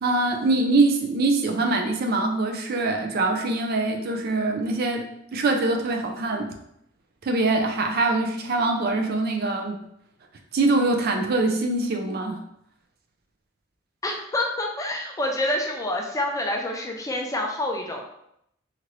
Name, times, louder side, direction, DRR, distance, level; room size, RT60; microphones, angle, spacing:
voice 1, 0.0-6.5 7.2-9.8 10.5-12.4, right 2 dB, 50° right, 3 dB, 0.4 m, -23 dB
voice 2, 14.0-18.0, left 1 dB, 15° left, 1 dB, 0.4 m, -27 dB
2.9 x 2.5 x 3.0 m, 0.76 s
head